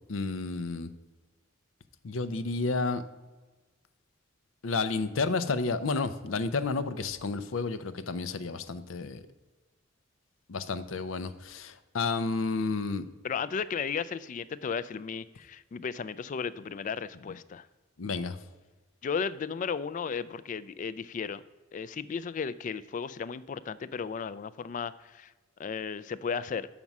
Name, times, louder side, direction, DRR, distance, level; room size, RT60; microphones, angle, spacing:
voice 1, 0.1-0.9 2.0-3.0 4.6-9.2 10.5-13.1 18.0-18.4, left 4 dB, 85° left, 12 dB, 0.6 m, -31 dB
voice 2, 13.2-17.7 19.0-21.4 21.7-25.3 25.6-26.7, left 6 dB, 40° left, 16 dB, 0.3 m, -34 dB
7.2 x 6.0 x 5.3 m, 1.3 s
head